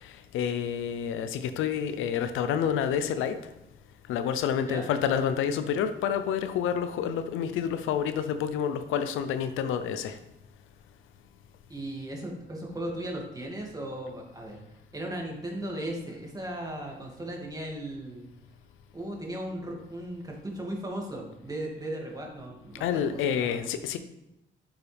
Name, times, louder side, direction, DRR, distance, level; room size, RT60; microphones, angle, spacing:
voice 1, 0.0-3.4 4.1-10.2 22.8-24.0, left 8 dB, 90° left, 10 dB, 0.7 m, -28 dB
voice 2, 11.7-14.6 14.9-18.3 18.9-23.6, right 1 dB, 20° right, -1 dB, 2.5 m, -37 dB
9.2 x 7.2 x 3.5 m, 0.87 s
cardioid pair, 90°, 20 cm